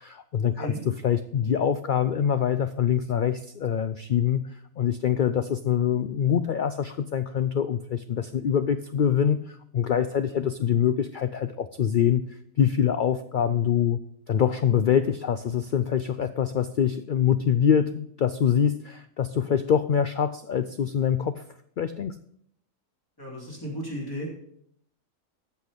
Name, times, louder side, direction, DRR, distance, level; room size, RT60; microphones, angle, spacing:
voice 1, 0.0-14.0 14.3-21.4 21.8-22.2, left 8 dB, 80° left, 11 dB, 0.4 m, -25 dB
voice 2, 23.2-24.3, equal, 15° left, -4 dB, 3.5 m, -35 dB
14.5 x 5.9 x 5.1 m, 0.69 s
omnidirectional pair, 1.4 m